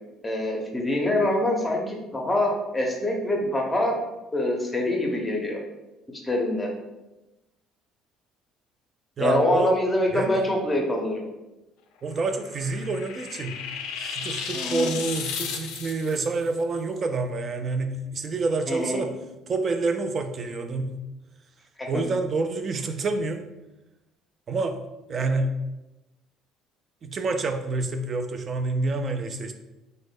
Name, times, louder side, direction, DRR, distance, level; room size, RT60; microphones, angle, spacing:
voice 1, 0.2-4.0 4.3-5.6 6.2-6.7 9.2-11.2 14.5-14.9 18.7-19.0 21.8-21.9, left 1 dB, 15° left, 1 dB, 0.6 m, -25 dB
voice 2, 9.2-9.7 10.1-10.5 12.0-13.6 13.9-19.1 19.5-21.0 21.9-23.4 24.5-24.8 25.1-25.5 27.0-29.5, right 3 dB, 35° right, 7 dB, 0.3 m, -28 dB
sound 1, 12.1-16.3, left 7 dB, 80° left, 0.4 m, -34 dB
3.0 x 2.1 x 3.6 m, 1.0 s
cardioid pair, 115°, 0 cm